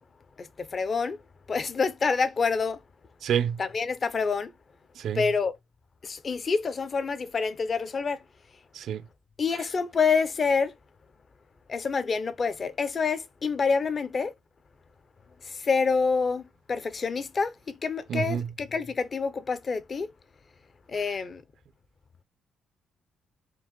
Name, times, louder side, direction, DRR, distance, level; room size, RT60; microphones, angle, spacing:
voice 1, 0.4-1.2 1.5-2.8 3.6-4.5 5.1-5.6 6.0-8.2 9.4-10.7 11.7-14.3 15.4-20.1 20.9-21.4, left 5 dB, 35° left, 0.5 m, -27 dB
voice 2, 3.2-3.6 5.0-5.3 8.7-9.1 9.5-9.7 18.1-18.5, right 8 dB, 65° right, 0.4 m, -28 dB
4.5 x 2.5 x 3.7 m
cardioid pair, 135°, 0 cm